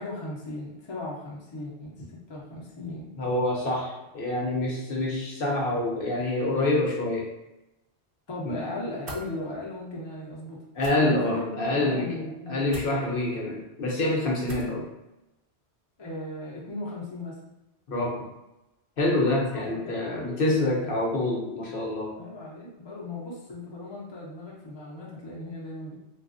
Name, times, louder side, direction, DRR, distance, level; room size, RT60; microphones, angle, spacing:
voice 1, 0.0-3.2 8.3-10.6 11.0-12.6 16.0-17.4 19.5-20.5 20.8-20.9 22.2-26.0, left 2 dB, 35° left, -4 dB, 0.5 m, -37 dB
voice 2, 3.2-7.3 8.4-8.6 10.7-12.1 12.5-14.9 17.9-18.3 19.0-22.1, left 2 dB, 60° left, -3 dB, 0.8 m, -26 dB
sound 1, 9.0-9.3 10.7-10.9 12.7-12.9 14.4-14.8, equal, 50° right, 0.7 m, -40 dB
3.2 x 2.3 x 2.5 m, 0.93 s
omnidirectional pair, 1.2 m